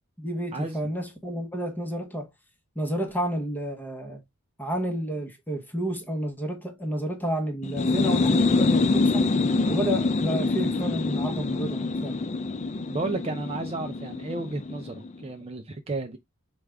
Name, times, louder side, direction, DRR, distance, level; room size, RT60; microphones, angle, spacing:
voice 1, 0.2-2.3 2.8-4.2 4.6-9.3 9.7-12.2, right 1 dB, 10° left, 0.9 m, -30 dB
sound 1, 7.6-15.1, left 3 dB, 35° left, 0.4 m, -25 dB
voice 2, 12.8-16.2, right 2 dB, 30° right, 0.5 m, -33 dB
4.9 x 2.4 x 3.2 m
head